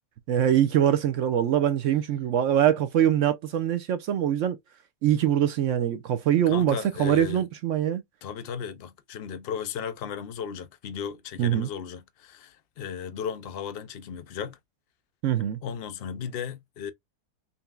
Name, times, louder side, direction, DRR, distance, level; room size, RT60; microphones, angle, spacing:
voice 1, 0.3-4.6 5.0-8.0 11.4-11.7 15.2-15.6, right 10 dB, 70° right, 0.7 m, -23 dB
voice 2, 6.5-7.4 8.2-14.6 15.6-16.9, left 7 dB, 70° left, 0.5 m, -35 dB
5.2 x 2.9 x 2.3 m
omnidirectional pair, 1.7 m